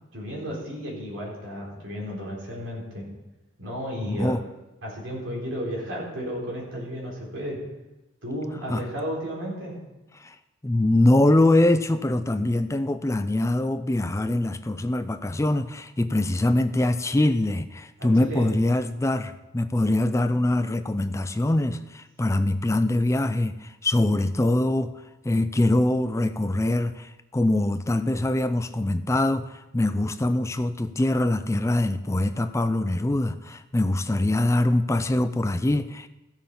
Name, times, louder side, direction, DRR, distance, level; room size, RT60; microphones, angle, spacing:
voice 1, 0.1-3.1 3.6-4.3 4.8-7.6 8.2-9.7 18.0-18.5, equal, 65° right, -3 dB, 4.2 m, -33 dB
voice 2, 4.0-4.4 8.7-8.8 10.2-10.4 10.6-24.9 25.2-36.1, left 1 dB, 15° left, 11 dB, 0.4 m, -23 dB
15.0 x 7.2 x 5.6 m, 1.0 s
head